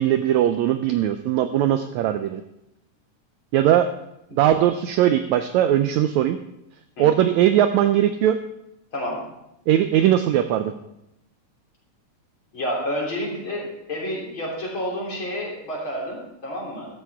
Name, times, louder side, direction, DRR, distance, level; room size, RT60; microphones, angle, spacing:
voice 1, 0.0-2.4 3.5-3.9 4.3-6.4 7.0-8.4 9.7-10.7, right 11 dB, 85° right, 9 dB, 1.6 m, -19 dB
voice 2, 12.5-16.2 16.4-16.9, equal, 40° left, -3 dB, 3.7 m, -29 dB
14.0 x 12.5 x 3.5 m, 0.84 s
omnidirectional pair, 3.8 m